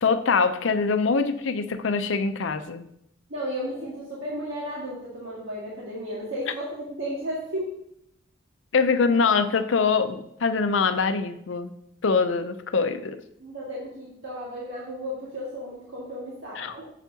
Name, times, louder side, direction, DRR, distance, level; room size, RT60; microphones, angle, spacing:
voice 1, 0.0-2.8 8.7-11.7 12.0-13.2 16.6-16.8, left 5 dB, 75° left, 10 dB, 0.5 m, -23 dB
voice 2, 3.3-7.7 13.4-16.9, equal, 85° right, -6 dB, 1.8 m, -34 dB
8.1 x 7.2 x 2.8 m, 0.76 s
head